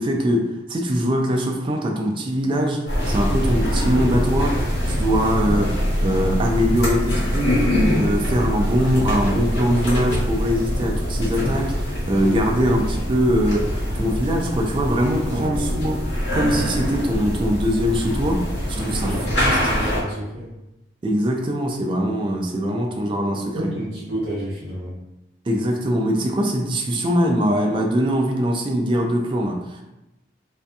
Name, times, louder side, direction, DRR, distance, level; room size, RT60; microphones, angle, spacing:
voice 1, 0.0-7.7 8.0-19.1 21.0-23.7 25.5-29.8, equal, 25° right, 1 dB, 0.3 m, -22 dB
sound 1, 2.9-20.0, equal, 70° left, 0.8 m, -23 dB
voice 2, 18.7-20.5 23.5-24.9, right 1 dB, 60° right, -10 dB, 0.7 m, -30 dB
2.6 x 2.5 x 2.2 m, 0.97 s
head